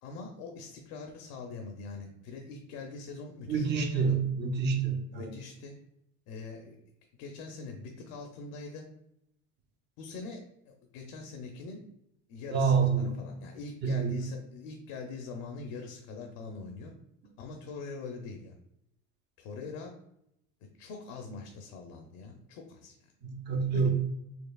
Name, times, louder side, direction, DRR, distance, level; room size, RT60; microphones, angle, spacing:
voice 1, 0.0-4.2 5.1-5.8 6.3-6.8 7.2-8.9 10.0-11.8 12.3-16.9 17.4-18.5 19.4-19.9 20.8-23.0 23.5-23.9, left 4 dB, 80° left, 3 dB, 0.6 m, -43 dB
voice 2, 3.5-5.3 12.5-13.1 13.8-14.2 23.2-23.9, right 5 dB, 35° right, 4 dB, 0.6 m, -27 dB
4.5 x 2.8 x 2.3 m, 0.79 s
cardioid pair, 160°, 31 cm